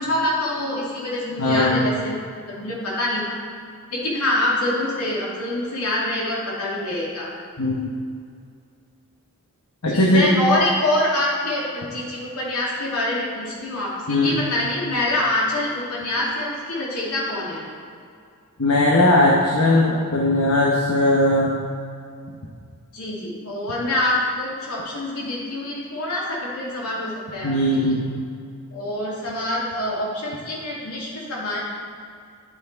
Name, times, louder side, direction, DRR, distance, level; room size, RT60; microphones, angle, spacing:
voice 1, 0.0-2.2 2.5-3.4 3.9-7.3 9.9-17.6 22.9-28.0 28.7-31.6, left 1 dB, 90° left, -4 dB, 2.3 m, -25 dB
voice 2, 1.4-1.8 7.6-7.9 9.8-10.3 14.1-14.4 18.6-21.5 27.4-28.0, left 1 dB, 70° left, -3 dB, 1.1 m, -18 dB
9.3 x 6.3 x 4.6 m, 2.3 s
head